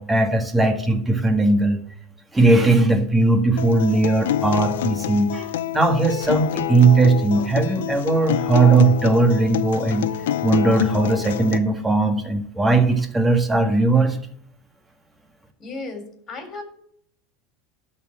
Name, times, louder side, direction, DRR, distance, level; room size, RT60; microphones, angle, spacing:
voice 1, 0.0-1.8 2.3-10.1 10.4-14.2, right 3 dB, 10° right, 6 dB, 1.7 m, -18 dB
Acoustic guitar, 3.6-11.6, left 11 dB, 85° left, 0.7 m, -26 dB
voice 2, 15.6-16.6, left 3 dB, 30° left, 5 dB, 3.5 m, -34 dB
12.5 x 4.4 x 7.7 m, 0.65 s
supercardioid pair, 115°, 0 cm